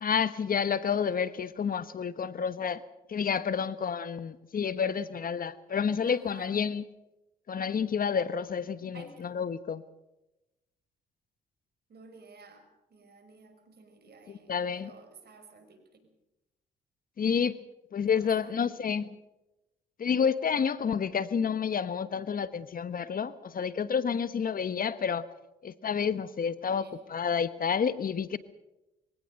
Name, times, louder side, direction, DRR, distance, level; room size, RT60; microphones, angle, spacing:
voice 1, 0.0-2.8 3.1-6.8 7.5-9.8 14.3-14.9 17.2-17.6 17.9-19.1 20.0-25.2 25.6-28.4, left 7 dB, 50° left, 1.2 m, -29 dB
voice 2, 6.0-6.5 8.9-9.3 11.9-16.1 18.1-18.7 26.8-27.0, right 4 dB, 60° right, 5.8 m, -53 dB
23.5 x 17.5 x 6.6 m
supercardioid pair, 60°, 19 cm